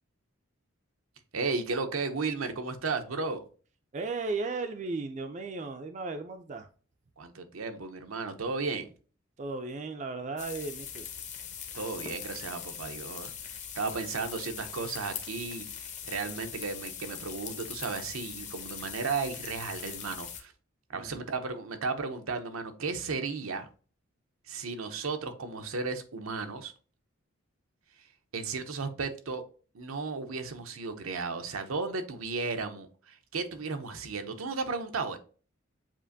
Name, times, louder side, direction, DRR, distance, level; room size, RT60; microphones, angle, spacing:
voice 1, 1.3-3.4 7.2-8.9 11.7-20.5 20.9-23.7 24.5-26.7 28.3-29.4 29.7-35.2, right 4 dB, 85° right, 0.7 m, -34 dB
voice 2, 3.9-6.7 9.4-11.1 20.9-21.3, right 3 dB, 35° right, 0.4 m, -35 dB
sound 1, 10.4-20.4, left 8 dB, 35° left, 0.7 m, -41 dB
7.3 x 2.5 x 2.6 m
head